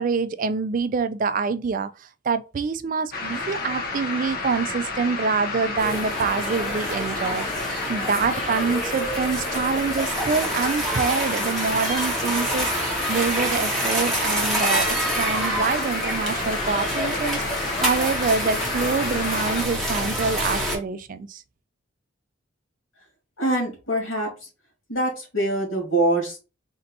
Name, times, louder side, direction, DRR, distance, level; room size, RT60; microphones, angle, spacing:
voice 1, 0.0-7.5 7.9-21.4, right 5 dB, 40° right, 0.3 m, -26 dB
sound 1, 3.1-19.6, left 3 dB, 45° left, 0.9 m, -31 dB
sound 2, 5.8-20.8, right 1 dB, ahead, 1.2 m, -27 dB
voice 2, 23.4-24.3 24.9-26.4, right 1 dB, 80° left, 2.6 m, -24 dB
4.3 x 2.8 x 3.9 m
head